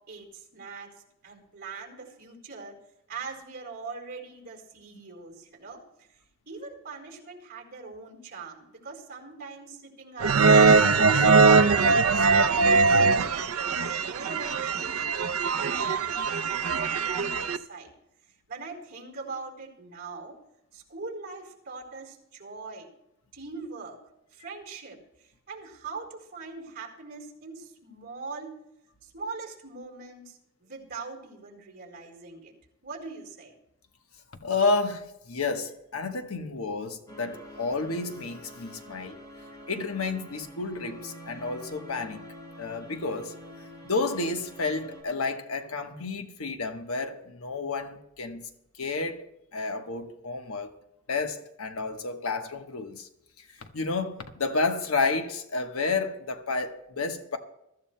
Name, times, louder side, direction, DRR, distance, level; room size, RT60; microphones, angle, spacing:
voice 1, 0.1-0.9 1.2-2.8 3.1-6.2 6.5-11.6 12.0-15.3 15.5-17.9 18.5-20.4 20.7-22.9 23.3-24.0 24.3-28.6 29.0-32.5 32.8-33.5, right 4 dB, 45° right, 4.0 m, -42 dB
sound 1, 10.2-17.6, right 4 dB, 85° right, 0.6 m, -21 dB
voice 2, 34.4-39.2 39.7-42.2 42.6-43.3 43.8-48.5 48.8-49.2 49.5-50.7 51.1-53.1 53.6-57.4, left 3 dB, 75° left, 1.2 m, -30 dB
sound 2, 37.1-45.0, equal, 20° left, 4.4 m, -46 dB
21.5 x 13.5 x 2.2 m
head